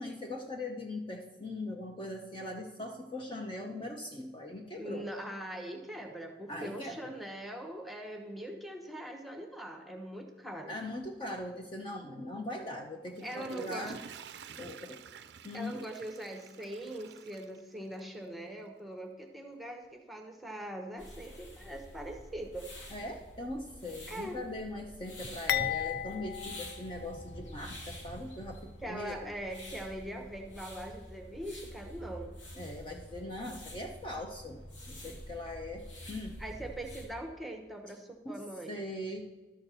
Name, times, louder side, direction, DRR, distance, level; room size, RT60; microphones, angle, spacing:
voice 1, 0.0-5.1 6.5-7.1 10.7-14.0 14.5-15.0 15.4-15.8 22.9-29.3 32.6-36.4 38.2-39.2, left 1 dB, 25° left, 2 dB, 0.7 m, -40 dB
voice 2, 4.8-10.8 13.2-13.9 15.5-22.7 24.1-24.4 28.8-32.3 36.4-38.8, right 1 dB, ahead, 3 dB, 0.9 m, -42 dB
Water / Toilet flush, 12.9-18.2 18.7-18.8, right 6 dB, 60° right, 0.4 m, -50 dB
sound 1, 21.0-37.1, equal, 85° left, 2.3 m, -48 dB
sound 2, 25.5-27.6 28.0-28.2 29.0-29.2, left 11 dB, 55° left, 0.3 m, -35 dB
12.5 x 4.5 x 6.7 m, 1.2 s
head